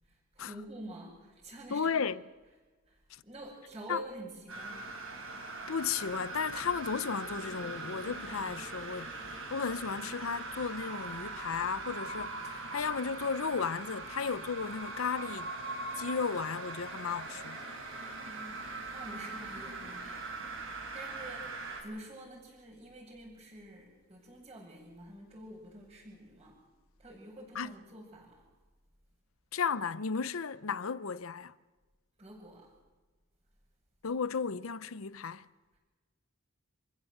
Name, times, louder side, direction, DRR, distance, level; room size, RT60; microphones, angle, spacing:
voice 1, 0.1-2.0 2.9-4.9 18.2-18.6 18.9-20.4 20.9-26.6 27.0-28.5 32.2-32.7, right 1 dB, 30° right, 6.5 m, -48 dB
voice 2, 1.7-2.2 3.1-3.2 3.9-4.0 5.7-15.5 16.0-17.6 27.5-27.8 29.5-31.5 34.0-35.5, left 5 dB, 80° left, 0.7 m, -34 dB
sound 1, 4.5-21.8, right 3 dB, 75° right, 6.3 m, -41 dB
27.0 x 15.0 x 7.9 m
head